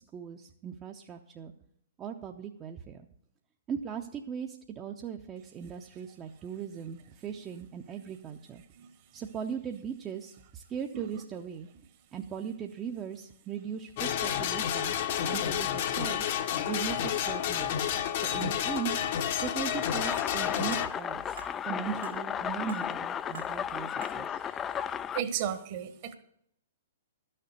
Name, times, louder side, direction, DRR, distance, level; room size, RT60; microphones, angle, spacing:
voice 1, 0.1-1.5 2.0-3.0 3.7-8.6 9.1-11.7 12.1-16.2 16.7-18.9 19.4-21.4 21.7-23.9 24.1-24.3, right 7 dB, 25° right, 3 dB, 0.7 m, -38 dB
sound 1, 14.0-20.9, left 10 dB, 50° left, 1.0 m, -30 dB
sound 2, 19.4-19.6 20.0-20.2 20.7-20.9 21.4-21.5 22.0-22.2 22.7-22.8 23.3-23.5 24.0-24.2, right 4 dB, 70° right, 2.0 m, -45 dB
sound 3, 19.8-25.2, left 8 dB, 20° left, 0.4 m, -34 dB
voice 2, 25.1-26.2, right 9 dB, 45° right, 9 dB, 1.4 m, -33 dB
12.5 x 6.6 x 6.8 m, 0.70 s
figure-of-eight pair, 115°, 0 cm